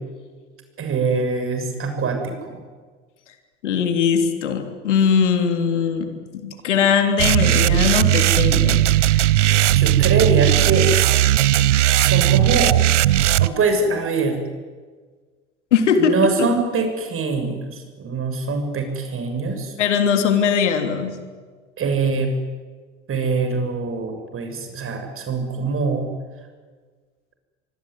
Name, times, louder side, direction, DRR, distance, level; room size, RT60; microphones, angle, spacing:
voice 1, 0.8-2.6 8.9-9.3 9.7-10.9 12.0-12.8 13.4-14.4 16.0-19.7 21.8-22.4 23.1-26.1, right 4 dB, 35° right, 6 dB, 7.0 m, -23 dB
voice 2, 3.6-8.8 15.7-16.1 19.8-21.2, left 7 dB, 75° left, 6 dB, 3.4 m, -20 dB
sound 1, 7.2-13.5, right 14 dB, 75° right, 0.8 m, -17 dB
25.0 x 24.5 x 9.6 m, 1.5 s
hypercardioid pair, 70°, 36 cm